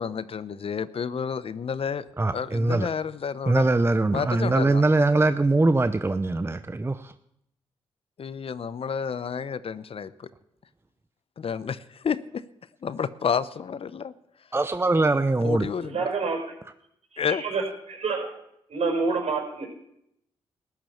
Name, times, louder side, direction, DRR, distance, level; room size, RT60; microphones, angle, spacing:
voice 1, 0.0-2.1 2.3-3.7 4.1-4.8 8.2-10.3 11.4-12.4 12.8-14.1 15.4-16.1 17.2-17.4, left 6 dB, 55° left, 16 dB, 0.8 m, -30 dB
voice 2, 2.2-2.9 3.5-7.1 14.5-15.7, right 2 dB, 20° right, 11 dB, 0.7 m, -22 dB
voice 3, 15.8-16.4 17.1-17.6 17.9-18.3 18.7-19.7, right 4 dB, 65° right, 2 dB, 5.5 m, -27 dB
14.0 x 10.5 x 7.1 m, 0.77 s
supercardioid pair, 45°, 12 cm